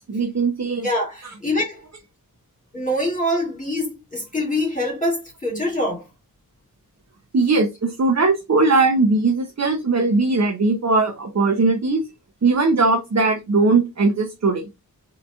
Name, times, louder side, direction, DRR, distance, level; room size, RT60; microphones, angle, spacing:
voice 1, 0.1-0.9 7.3-12.0 12.4-14.7, right 3 dB, 50° right, 0.7 m, -19 dB
voice 2, 0.8-1.8 2.7-6.0, left 1 dB, 20° left, 2.4 m, -24 dB
4.0 x 2.9 x 3.5 m
wide cardioid pair, 85°, 35 cm